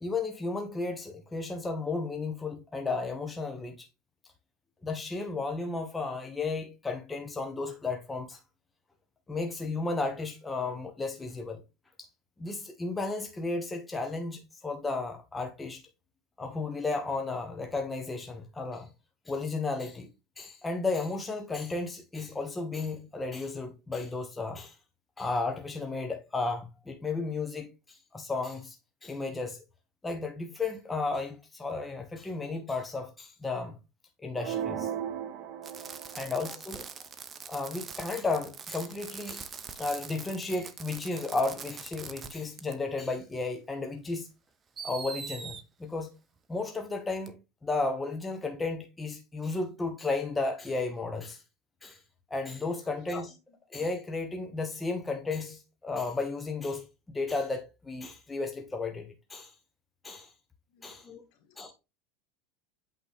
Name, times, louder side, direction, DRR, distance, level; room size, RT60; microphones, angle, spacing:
voice 1, 0.0-3.9 4.8-8.4 9.3-11.6 12.4-15.8 16.4-18.9 19.3-20.1 20.4-24.8 25.2-28.8 29.0-29.6 30.0-33.7 34.2-34.9 36.1-36.8 37.4-44.3 44.8-46.1 46.5-51.4 51.8-52.0 52.3-53.3 53.7-59.5 60.0-60.3 60.8-61.2 61.6-61.7, left 3 dB, 15° left, 1.0 m, -33 dB
sound 1, 34.4-36.4, right 9 dB, 50° right, 1.3 m, -36 dB
Fireworks, 35.6-42.3 42.6-42.7 43.8-43.9 44.8-45.6 47.3-47.4, right 6 dB, 25° right, 0.8 m, -43 dB
voice 2, 52.8-53.3 60.7-61.0 61.3-61.7, left 6 dB, 60° left, 1.9 m, -60 dB
8.1 x 3.8 x 3.5 m
supercardioid pair, 115°, 0 cm